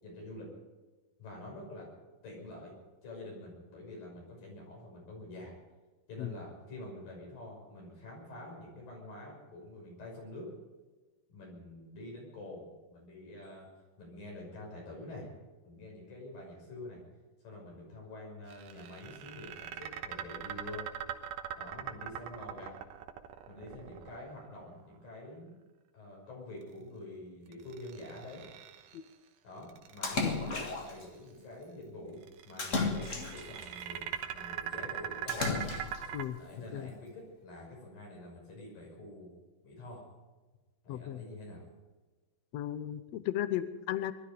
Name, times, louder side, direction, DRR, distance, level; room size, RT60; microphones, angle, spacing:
voice 1, 0.0-0.5 1.2-1.9 2.2-2.7 3.0-5.5 6.1-10.5 11.3-12.7 12.9-13.7 14.0-15.3 15.6-17.0 17.4-20.9 21.5-22.7 23.5-25.5 25.9-28.4 29.4-35.7 36.4-39.3 39.6-40.0 40.8-41.6, left 1 dB, 90° left, -1 dB, 7.8 m, -47 dB
sound 1, 18.5-24.7 27.5-29.1 29.6-31.0 32.2-36.2, right 10 dB, 75° right, 2.6 m, -41 dB
Splash splatter, 30.0-31.0 32.6-33.7 35.3-36.1, left 4 dB, 40° left, 1.1 m, -33 dB
voice 2, 40.9-41.2 42.5-44.1, left 12 dB, 75° left, 13 dB, 1.6 m, -35 dB
22.0 x 12.5 x 5.2 m, 1.2 s
omnidirectional pair, 3.9 m